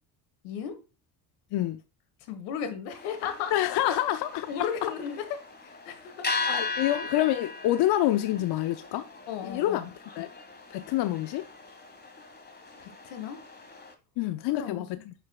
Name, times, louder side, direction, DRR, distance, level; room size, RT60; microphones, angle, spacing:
voice 1, 0.4-0.7 2.3-3.5 3.8-4.0 4.5-5.2 5.6-6.3 6.8-7.1 9.3-9.9 12.8-13.4 14.5-14.8, left 7 dB, 75° left, 1.4 m, -35 dB
sound 1, 2.9-13.9, left 4 dB, 20° left, 1.5 m, -38 dB
voice 2, 3.5-4.5 4.8-4.9 6.5-9.0 9.4-9.8 10.2-10.3 10.7-11.4 14.2-15.1, left 13 dB, 55° left, 0.6 m, -27 dB
6.7 x 6.5 x 2.3 m
hypercardioid pair, 60°, 48 cm